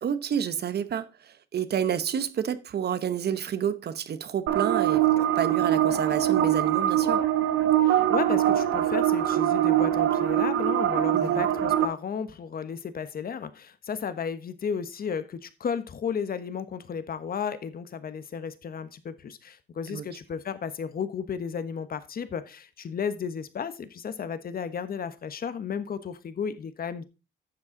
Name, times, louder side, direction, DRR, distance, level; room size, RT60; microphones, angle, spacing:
voice 1, 0.0-7.2 11.1-11.4 19.9-20.0, right 8 dB, 55° right, 0.9 m, -29 dB
sound 1, 4.5-11.9, right 12 dB, 80° right, 1.2 m, -23 dB
voice 2, 7.8-27.0, left 7 dB, 50° left, 1.2 m, -33 dB
10.5 x 7.2 x 3.8 m
cardioid pair, 90°, 20 cm